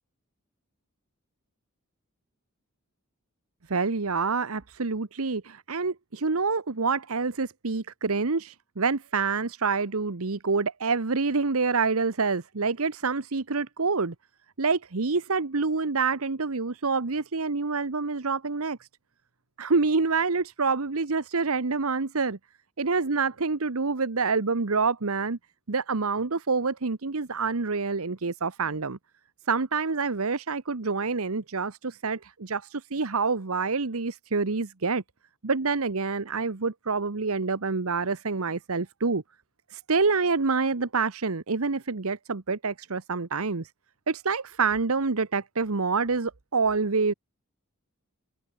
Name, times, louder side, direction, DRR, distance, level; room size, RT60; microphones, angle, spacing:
voice 1, 3.7-14.1 14.6-18.9 19.6-22.4 22.8-25.4 25.7-29.0 29.5-35.0 35.4-39.2 39.7-43.7 44.1-47.1, right 4 dB, 80° right, 1.1 m, -27 dB
head